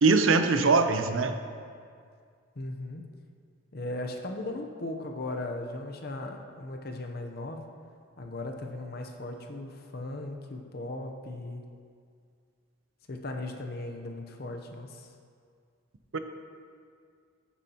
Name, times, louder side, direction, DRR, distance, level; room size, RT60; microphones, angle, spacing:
voice 1, 0.0-1.3 16.1-16.2, right 4 dB, 70° right, 8 dB, 0.6 m, -22 dB
voice 2, 2.6-3.0 3.7-7.6 8.2-11.6 13.1-15.1, left 2 dB, 50° left, 3 dB, 0.8 m, -37 dB
14.5 x 7.0 x 2.9 m, 2.2 s
head